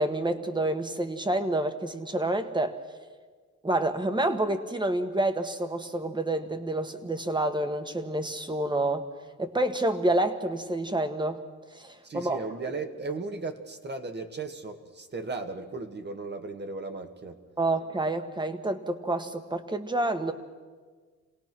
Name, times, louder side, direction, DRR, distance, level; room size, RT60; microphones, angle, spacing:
voice 1, 0.0-2.8 3.6-9.0 9.4-11.4 11.7-12.4 17.6-20.3, right 1 dB, 15° right, 9 dB, 1.6 m, -28 dB
voice 2, 12.0-17.4, right 3 dB, 35° right, 6 dB, 1.8 m, -36 dB
27.0 x 17.5 x 6.1 m, 1.5 s
cardioid pair, 90°, 30 cm